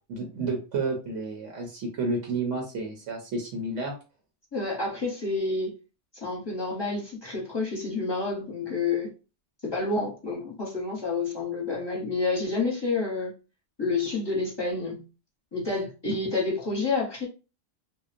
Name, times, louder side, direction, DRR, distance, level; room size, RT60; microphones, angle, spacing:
voice 1, 0.1-3.9 16.0-16.1, right 3 dB, 75° right, 1.0 m, -31 dB
voice 2, 4.5-5.7 6.2-9.1 9.6-13.3 13.8-15.0 15.5-17.3, left 3 dB, 25° left, 0.8 m, -29 dB
2.7 x 2.0 x 2.4 m
omnidirectional pair, 1.3 m